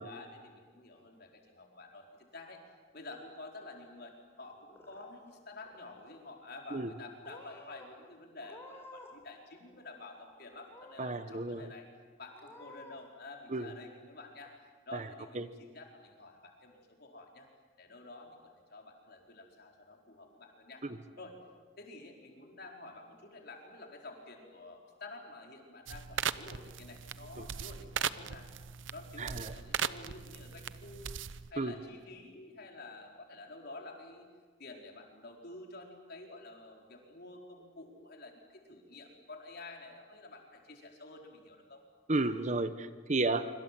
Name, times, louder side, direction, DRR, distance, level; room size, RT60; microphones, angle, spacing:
voice 1, 0.0-2.1 2.3-2.6 2.9-11.9 12.2-14.5 14.9-17.5 17.8-18.4 18.7-20.8 21.2-21.4 21.8-28.5 28.9-31.1 31.5-34.3 34.6-41.8, left 2 dB, 55° left, 1 dB, 4.5 m, -50 dB
Purr / Meow, 4.5-5.3 5.6-6.2 6.8-7.0 7.2-7.9 8.4-9.2 9.5-10.3 10.7-11.3 11.7-11.8 12.3-13.0, left 1 dB, 15° left, 4.2 m, -54 dB
voice 2, 11.0-11.7 13.5-13.7 14.9-15.0 15.3-15.5 20.8-21.0 27.4-27.5 29.2-29.5 31.6-31.7 42.1-43.4, right 2 dB, 40° right, 11 dB, 1.0 m, -32 dB
sound 1, 25.9-31.5, right 8 dB, 75° right, 0.7 m, -38 dB
25.5 x 25.5 x 7.6 m, 1.5 s
head